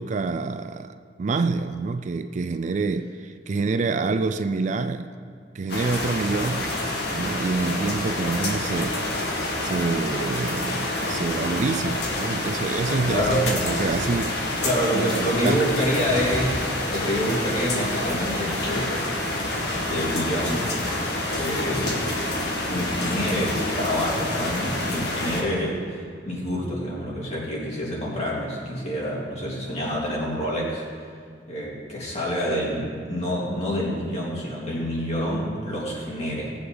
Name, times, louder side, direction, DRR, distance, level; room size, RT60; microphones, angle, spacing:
voice 1, 0.0-5.1 5.5-6.7 7.1-9.1 9.6-14.6 14.9-15.6, right 3 dB, 40° right, 0.4 m, -27 dB
sound 1, 5.7-25.4, left 1 dB, 65° left, 1.8 m, -27 dB
voice 2, 13.0-13.5 14.6-19.0 19.8-20.7 21.4-22.2 22.7-30.8 31.5-36.5, equal, 40° left, 3.1 m, -27 dB
18.0 x 7.9 x 3.9 m
head